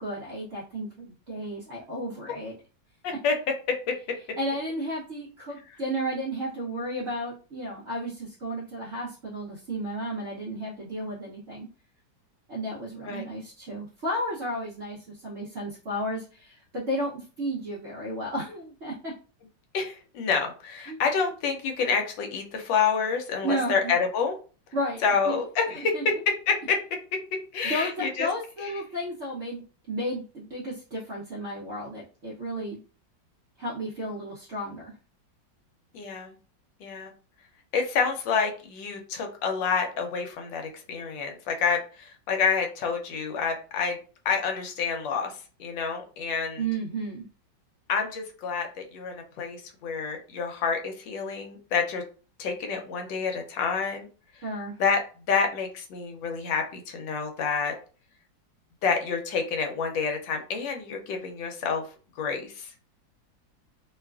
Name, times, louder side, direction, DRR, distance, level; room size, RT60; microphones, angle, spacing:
voice 1, 0.0-2.5 4.4-11.7 12.5-19.1 20.9-21.0 23.4-23.8 24.7-25.4 25.7-26.0 27.6-29.6 29.9-32.8 33.6-34.9 46.6-47.3 54.4-54.8, equal, 65° right, -4 dB, 0.6 m, -33 dB
voice 2, 3.0-3.3 13.0-13.2 19.7-24.3 25.0-25.9 26.5-26.8 27.5-28.3 35.9-36.3 36.8-37.1 37.7-44.0 44.2-46.6 47.9-52.0 52.4-54.1 54.8-55.0 55.3-57.7 58.8-61.8 62.2-62.7, left 5 dB, 85° left, 3 dB, 1.3 m, -28 dB
3.0 x 2.3 x 2.3 m, 0.37 s
omnidirectional pair, 2.0 m